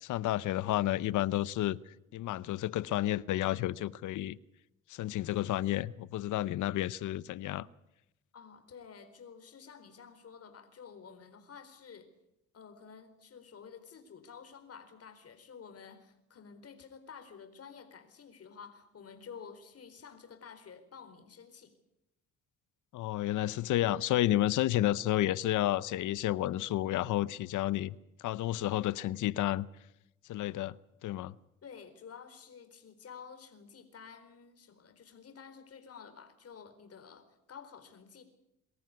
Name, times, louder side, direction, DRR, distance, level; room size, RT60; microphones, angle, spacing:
voice 1, 0.0-1.8 2.1-4.4 4.9-7.7 22.9-27.9 28.2-29.7 30.3-30.7 31.0-31.3, left 14 dB, 80° left, 0.8 m, -31 dB
voice 2, 8.3-12.1 12.5-21.7 31.6-38.2, left 6 dB, 50° left, 4.2 m, -51 dB
23.5 x 14.0 x 9.5 m
cardioid pair, 90°, 30 cm